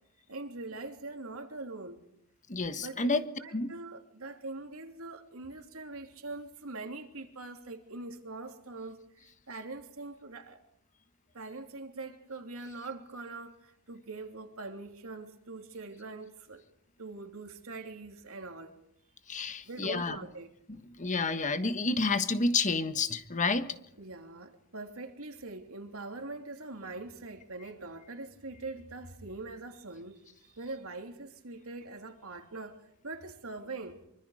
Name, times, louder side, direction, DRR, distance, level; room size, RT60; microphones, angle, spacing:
voice 1, 0.3-2.0 2.8-3.1 3.4-10.6 11.3-16.6 17.0-18.8 19.6-20.5 24.0-34.0, right 3 dB, 70° right, 3.1 m, -43 dB
voice 2, 2.5-3.2 3.5-3.7 19.3-20.2 21.0-23.7, left 3 dB, 35° left, 1.4 m, -29 dB
25.5 x 24.5 x 5.0 m
head